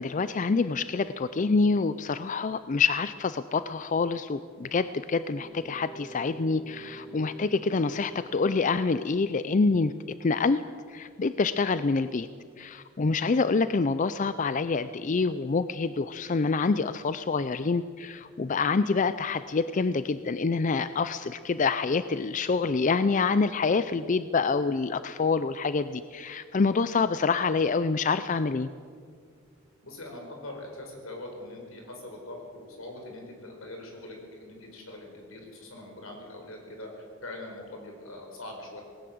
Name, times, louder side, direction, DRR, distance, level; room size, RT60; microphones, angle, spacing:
voice 1, 0.0-9.9 10.2-10.6 10.9-12.3 12.6-28.7, left 4 dB, 40° left, 13 dB, 0.4 m, -26 dB
sound 1, 5.4-8.1, right 3 dB, 5° left, 4.0 m, -46 dB
voice 2, 29.8-38.8, left 1 dB, 80° left, 2 dB, 5.1 m, -42 dB
19.0 x 18.0 x 7.8 m, 2.2 s
head